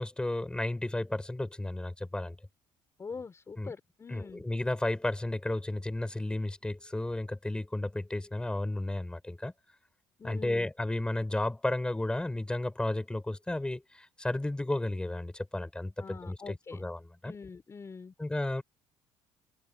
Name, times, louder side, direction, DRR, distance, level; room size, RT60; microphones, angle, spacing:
voice 1, 0.0-2.4 3.6-3.7 4.1-9.5 10.2-17.3 18.2-18.6, left 1 dB, 10° left, 7.9 m, -33 dB
voice 2, 3.0-4.4 10.2-10.7 16.0-16.9 17.2-18.1, left 5 dB, 25° left, 4.5 m, -44 dB
cardioid pair, 110°, 11 cm